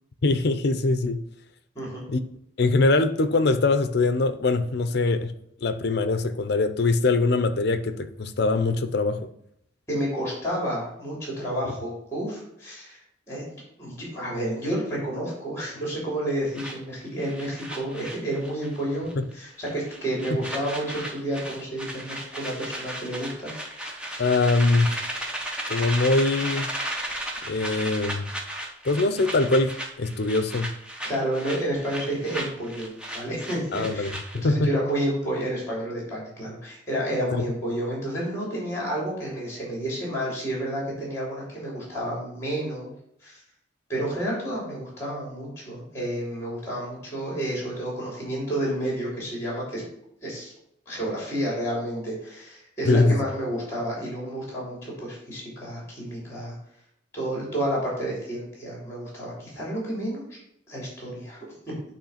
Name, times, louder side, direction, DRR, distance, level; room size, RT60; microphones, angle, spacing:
voice 1, 0.2-1.2 2.1-2.2 2.6-5.3 5.6-9.3 19.2-19.3 24.2-25.0 25.7-26.7 27.5-28.3 28.8-30.7 33.7-34.8 37.3-37.4 52.9-53.2, left 3 dB, 55° left, 11 dB, 0.6 m, -23 dB
voice 2, 9.9-13.0 13.3-23.5 31.0-34.1 34.4-42.9 43.2-43.4 43.9-49.8 50.2-50.5 50.9-56.5 57.1-60.4 60.7-61.4, right 1 dB, 15° left, -4 dB, 3.2 m, -30 dB
sound 1, 16.5-18.8 19.1-19.3 19.6-34.5, right 1 dB, 5° right, 1.0 m, -35 dB
9.1 x 3.1 x 5.7 m, 0.74 s
head